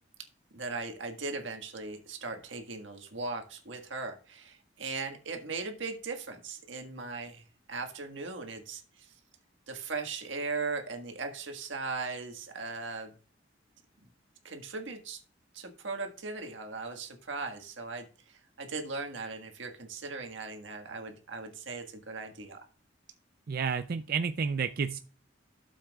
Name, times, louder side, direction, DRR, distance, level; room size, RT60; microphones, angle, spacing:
voice 1, 0.5-7.4 7.7-9.1 9.7-13.1 14.4-15.2 15.5-22.6, right 3 dB, 80° right, 4 dB, 1.7 m, -38 dB
voice 2, 23.5-25.0, right 6 dB, 50° right, 10 dB, 0.4 m, -30 dB
12.5 x 7.3 x 2.4 m, 0.38 s
head